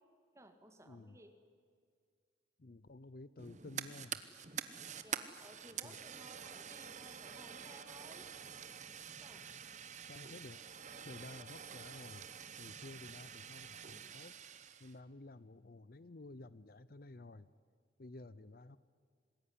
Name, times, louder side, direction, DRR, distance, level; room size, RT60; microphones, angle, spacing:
voice 1, 0.3-1.4 5.0-8.3 9.2-9.5, right 1 dB, 15° right, 7 dB, 2.0 m, -58 dB
voice 2, 0.8-1.2 2.6-4.2 5.8-6.0 10.0-12.3 12.6-14.4 14.8-17.5 18.0-18.8, left 2 dB, 50° left, 17 dB, 0.6 m, -53 dB
Fire, 3.4-14.9, right 8 dB, 40° right, 1.1 m, -47 dB
26.5 x 20.5 x 9.8 m, 2.1 s
head